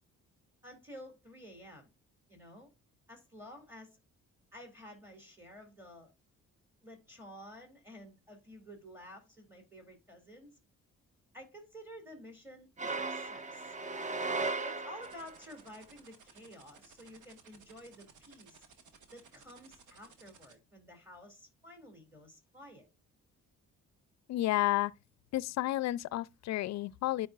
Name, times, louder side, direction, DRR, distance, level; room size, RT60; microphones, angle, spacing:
voice 1, 0.6-1.9 2.3-2.7 3.1-4.0 4.5-6.1 6.8-10.6 11.3-13.7 14.6-18.6 19.1-22.9, equal, 5° right, 2.5 m, -52 dB
sound 1, 12.8-15.4, right 3 dB, 25° right, 0.7 m, -36 dB
sound 2, 15.0-20.5, right 6 dB, 80° right, 1.5 m, -58 dB
voice 2, 24.3-24.9 25.3-27.3, left 15 dB, 65° left, 0.4 m, -31 dB
10.0 x 5.0 x 2.4 m
cardioid pair, 90°, 30 cm